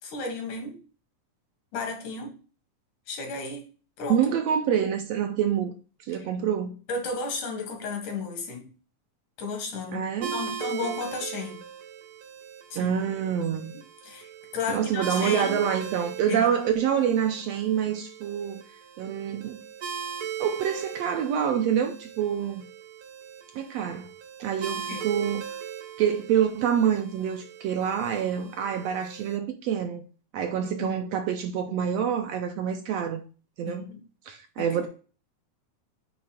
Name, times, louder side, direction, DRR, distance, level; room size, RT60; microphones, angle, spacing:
voice 1, 0.0-0.8 1.7-2.3 3.1-3.7 4.0-4.2 4.6-4.7 6.1-6.3 6.9-8.7 9.4-11.6 12.7-12.9 14.0-14.3 14.5-15.6 16.3-16.5 24.9-25.0 30.6-31.1 33.6-34.0 34.6-34.9, left 4 dB, 85° left, 3.3 m, -34 dB
voice 2, 4.1-5.7 6.1-6.8 9.9-10.4 12.7-13.7 14.7-18.6 19.0-19.6 20.4-22.7 23.5-24.1 24.4-25.4 26.0-30.0 30.3-33.2 33.6-33.9 34.3-34.9, right 8 dB, 75° right, 1.7 m, -26 dB
sound 1, 10.2-29.4, right 8 dB, 60° right, 1.5 m, -39 dB
8.7 x 3.2 x 5.0 m
omnidirectional pair, 3.4 m